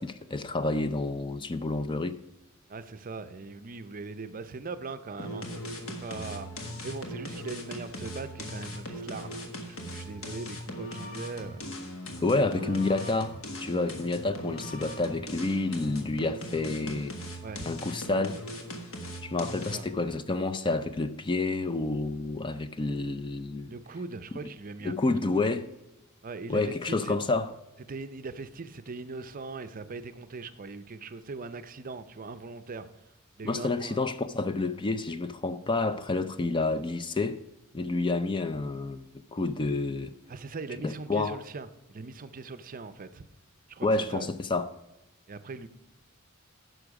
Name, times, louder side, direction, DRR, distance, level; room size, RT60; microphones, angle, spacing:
voice 1, 0.0-2.2 12.2-17.1 17.7-18.4 19.2-23.7 24.8-25.7 26.5-27.5 33.4-37.4 37.7-40.1 40.8-41.4 43.8-44.7, left 3 dB, 20° left, 0.4 m, -29 dB
voice 2, 2.7-5.5 6.0-11.7 12.5-12.9 17.4-17.7 19.7-19.8 23.7-24.9 25.3-25.5 26.2-27.2 27.9-32.9 33.4-34.0 40.3-43.2 43.7-44.3 45.3-45.7, right 3 dB, 40° right, 0.6 m, -40 dB
sound 1, 5.2-20.0, equal, 70° left, 1.5 m, -39 dB
10.0 x 6.3 x 4.8 m
head